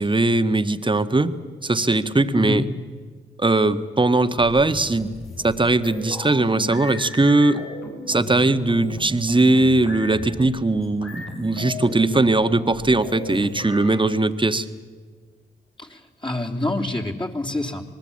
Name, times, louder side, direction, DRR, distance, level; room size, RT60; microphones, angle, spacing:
voice 1, 0.0-1.4 1.6-2.6 3.4-5.1 5.4-7.6 8.1-14.7, right 2 dB, 25° right, 10 dB, 1.6 m, -20 dB
voice 2, 2.3-2.7 15.8-17.8, left 2 dB, 25° left, 0 dB, 3.4 m, -27 dB
sound 1, 4.3-14.0, left 2 dB, 80° left, 6.8 m, -36 dB
26.5 x 19.5 x 8.8 m, 1.5 s
supercardioid pair, 45°, 20 cm